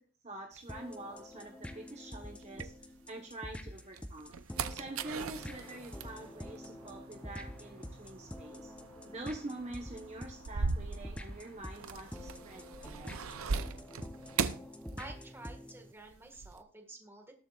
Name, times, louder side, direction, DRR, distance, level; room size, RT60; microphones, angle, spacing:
voice 1, 0.2-4.3 4.7-8.7 9.1-13.1, right 1 dB, 30° right, 1 dB, 1.2 m, -46 dB
sound 1, 0.6-3.3 3.8-15.5 15.8-16.6, right 5 dB, 75° right, 0.6 m, -40 dB
sound 2, 0.7-15.9, left 1 dB, 5° left, 0.7 m, -47 dB
voice 2, 15.0-17.3, right 2 dB, 10° right, 3 dB, 1.7 m, -50 dB
19.5 x 7.2 x 2.4 m, 0.43 s
head